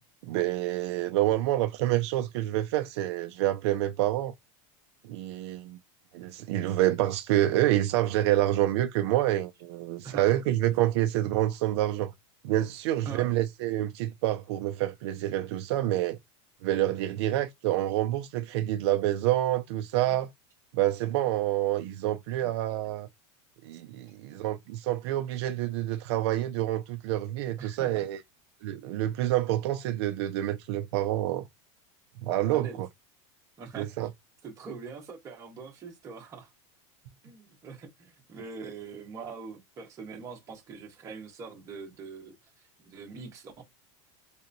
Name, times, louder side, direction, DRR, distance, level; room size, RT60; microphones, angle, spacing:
voice 1, 0.2-4.3 5.0-5.8 6.1-12.1 12.4-16.2 16.6-20.3 20.7-23.1 23.6-28.2 28.6-31.4 32.2-32.9 33.7-34.1, right 14 dB, 60° right, 0.4 m, -27 dB
voice 2, 10.0-10.4 13.0-13.3 20.1-20.2 22.4-22.8 27.6-28.0 32.5-32.8 33.6-34.1 34.4-36.5 37.2-42.3 42.8-43.6, right 5 dB, 20° right, 1.1 m, -43 dB
3.3 x 2.9 x 2.6 m
supercardioid pair, 170°, 16 cm